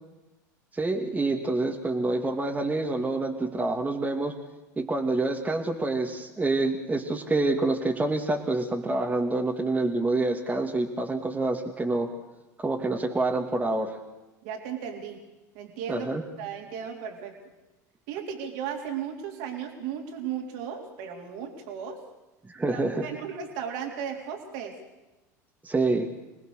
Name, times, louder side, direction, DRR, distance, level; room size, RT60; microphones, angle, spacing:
voice 1, 0.7-4.4 4.8-12.1 12.6-14.0 15.9-16.2 22.5-23.1 25.6-26.1, right 2 dB, 15° right, 1 dB, 2.4 m, -27 dB
voice 2, 14.4-15.2 15.5-16.1 16.4-17.3 18.1-22.0 22.7-24.7, right 8 dB, 65° right, 2 dB, 3.7 m, -35 dB
27.0 x 19.0 x 6.5 m, 1.1 s
hypercardioid pair, 85°, 10 cm